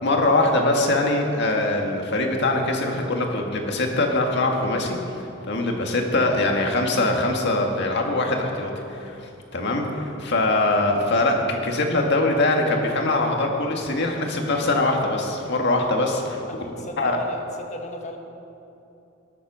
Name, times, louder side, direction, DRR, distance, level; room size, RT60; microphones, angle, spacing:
voice 1, 0.0-5.0 5.5-9.2 9.5-16.7 17.0-17.2, left 2 dB, 60° left, 1 dB, 1.9 m, -22 dB
voice 2, 16.5-18.2, left 1 dB, 35° left, 3 dB, 1.5 m, -37 dB
20.5 x 8.0 x 6.2 m, 2.8 s
head